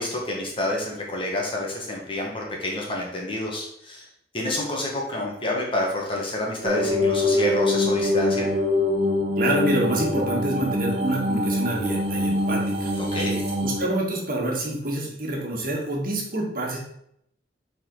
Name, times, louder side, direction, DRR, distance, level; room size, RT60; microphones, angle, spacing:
voice 1, 0.0-4.0 4.3-8.5 13.0-13.4, left 1 dB, 30° left, -2 dB, 1.6 m, -28 dB
sound 1, 6.6-13.8, left 1 dB, 35° right, 1.6 m, -24 dB
voice 2, 9.4-12.9 13.6-16.8, right 1 dB, 55° right, -2 dB, 1.7 m, -27 dB
7.6 x 4.3 x 4.0 m, 0.73 s
head